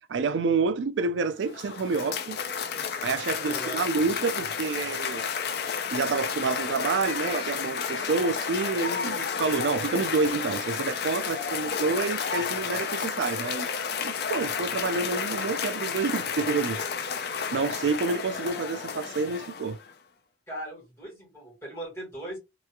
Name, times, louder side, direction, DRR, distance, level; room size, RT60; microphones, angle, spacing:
voice 1, 0.1-2.4 2.8-5.3 5.9-13.7 14.0-19.8, right 4 dB, 85° right, 0.4 m, -28 dB
Cheering / Applause, 1.3-19.9, left 6 dB, 60° left, 0.5 m, -32 dB
voice 2, 3.4-3.9 20.5-22.4, right 1 dB, 15° left, 2.1 m, -38 dB
3.2 x 3.0 x 2.3 m
head